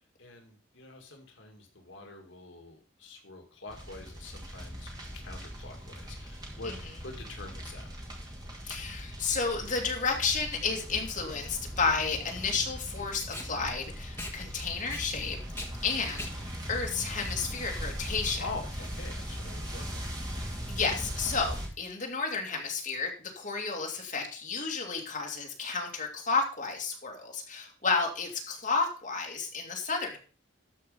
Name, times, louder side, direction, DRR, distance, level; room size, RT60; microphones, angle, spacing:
voice 1, 0.2-6.7 7.0-7.9 18.4-20.1, left 3 dB, 70° left, 3 dB, 2.0 m, -45 dB
sound 1, 3.7-21.7, equal, 20° right, 2.5 m, -40 dB
voice 2, 8.6-15.4 15.8-18.4 20.7-30.2, left 4 dB, 40° left, 1 dB, 2.3 m, -32 dB
Packing tape duct tape, 12.1-18.0, left 1 dB, 10° left, 1.5 m, -45 dB
13.0 x 5.2 x 5.4 m, 0.38 s
head